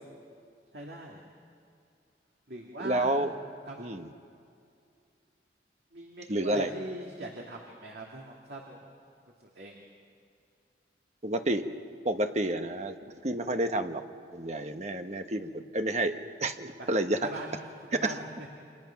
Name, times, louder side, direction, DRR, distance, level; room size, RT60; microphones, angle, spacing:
voice 1, 0.7-1.2 2.5-3.2 3.7-3.9 5.9-8.9 9.4-9.7 16.8-16.9 17.2-17.5 17.9-18.2, right 1 dB, 65° right, -1 dB, 2.4 m, -41 dB
voice 2, 2.8-3.3 3.8-4.1 6.3-6.7 11.2-11.7 12.0-13.0 13.2-14.0 14.3-17.2 17.9-18.1, right 1 dB, 40° right, 7 dB, 1.2 m, -29 dB
29.0 x 26.0 x 5.9 m, 2.4 s
head